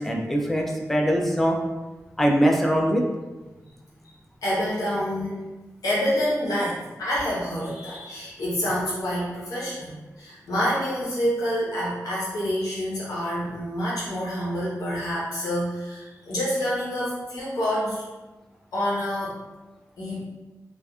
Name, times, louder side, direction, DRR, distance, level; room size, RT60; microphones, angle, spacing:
voice 1, 0.0-1.6 2.2-3.0, equal, 5° left, 0 dB, 0.4 m, -22 dB
voice 2, 4.4-5.4 5.8-18.1 18.7-19.4 20.0-20.2, equal, 90° left, -7 dB, 0.9 m, -27 dB
2.5 x 2.3 x 2.3 m, 1.1 s
cardioid pair, 65°, 6 cm